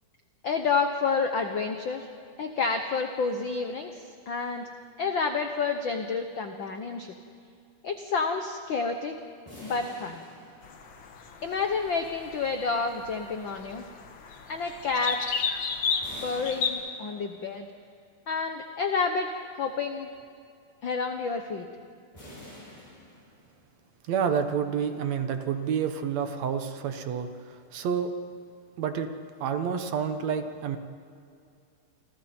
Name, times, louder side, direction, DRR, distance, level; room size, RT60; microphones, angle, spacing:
voice 1, 0.4-2.1 2.4-4.7 5.0-7.1 7.8-9.2 9.6-10.3 11.4-13.8 14.5-15.2 16.2-17.6 18.3-19.3 19.6-20.1 20.8-21.7, left 4 dB, 80° left, 5 dB, 1.0 m, -29 dB
sound 1, 9.5-11.3 16.0-17.7 22.1-23.8, left 1 dB, 10° left, 7.1 m, -48 dB
sound 2, 10.6-16.7, left 6 dB, 50° left, 1.6 m, -34 dB
voice 2, 24.1-28.1 28.8-29.1 29.4-30.8, right 7 dB, 65° right, 8 dB, 2.1 m, -29 dB
29.0 x 25.5 x 4.4 m, 2.3 s
omnidirectional pair, 3.7 m